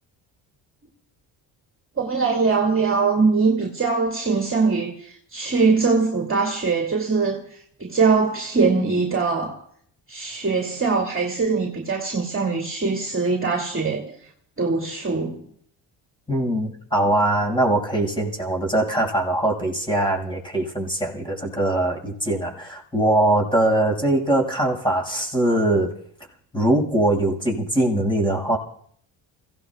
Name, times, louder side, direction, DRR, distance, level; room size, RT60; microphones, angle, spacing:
voice 1, 2.0-7.4 7.8-9.6 10.1-14.1 14.6-15.4, right 4 dB, 25° right, 2.5 m, -22 dB
voice 2, 16.3-25.9 26.5-28.6, right 1 dB, 10° left, 5.9 m, -22 dB
29.5 x 16.5 x 2.4 m
supercardioid pair, 65°, 49 cm